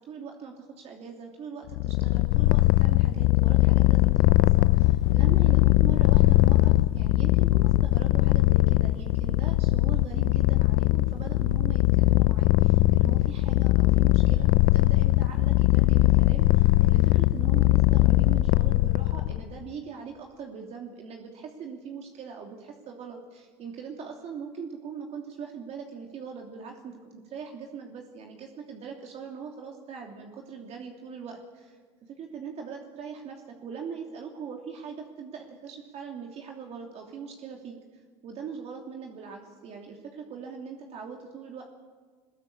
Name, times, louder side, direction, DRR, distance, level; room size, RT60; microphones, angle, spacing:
voice 1, 0.1-31.8 32.0-37.8 38.2-41.6, right 6 dB, 55° right, 1 dB, 2.9 m, -41 dB
Purr, 1.7-19.4, left 18 dB, 75° left, 0.6 m, -21 dB
21.5 x 20.5 x 8.6 m, 1.5 s
supercardioid pair, 80°, 13 cm